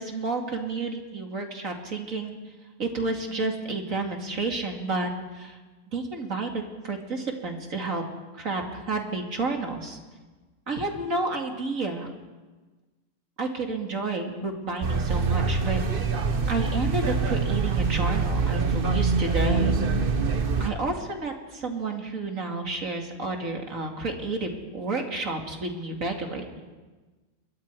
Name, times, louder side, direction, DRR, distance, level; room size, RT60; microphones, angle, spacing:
voice 1, 0.0-2.3 2.8-5.1 5.3-5.6 5.9-8.0 8.3-10.0 10.7-12.1 13.4-15.8 16.5-19.7 20.6-26.4, right 3 dB, 70° right, 2 dB, 2.9 m, -30 dB
sound 1, 14.8-20.7, right 4 dB, 40° right, 1.4 m, -25 dB
27.0 x 23.0 x 4.8 m, 1.3 s
omnidirectional pair, 1.5 m